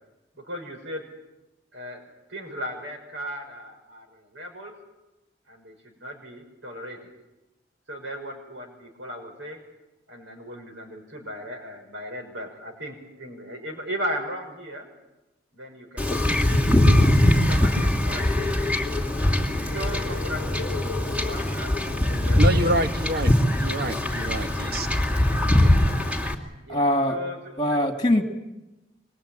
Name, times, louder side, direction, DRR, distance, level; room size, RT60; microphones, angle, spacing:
voice 1, 0.3-1.0 1.7-4.7 5.5-7.1 7.9-9.6 10.1-14.9 15.5-16.6 17.0-18.5 19.7-22.9 25.6-25.7 26.6-27.8, equal, 85° right, 5.7 m, -37 dB
Wind / Ocean / Boat Water vehicle, 16.0-26.3, left 1 dB, 5° right, 2.6 m, -22 dB
voice 2, 22.4-23.3 23.6-24.9, right 1 dB, 55° right, 1.5 m, -27 dB
voice 3, 26.7-27.2 27.6-28.2, left 1 dB, 25° left, 2.4 m, -22 dB
25.5 x 21.5 x 8.9 m
head